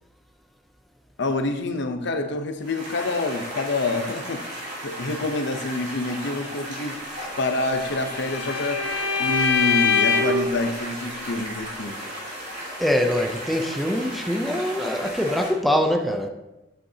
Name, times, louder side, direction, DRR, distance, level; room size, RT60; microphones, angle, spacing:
voice 1, 1.2-4.4 4.8-7.0 7.4-12.0, left 2 dB, 65° left, 0.7 m, -27 dB
sound 1, 2.6-15.5, equal, 40° right, 2.7 m, -35 dB
Bowed string instrument, 7.5-10.5, left 5 dB, 25° left, 2.4 m, -24 dB
voice 2, 12.8-16.3, equal, ahead, 0.6 m, -23 dB
8.8 x 7.7 x 2.8 m
head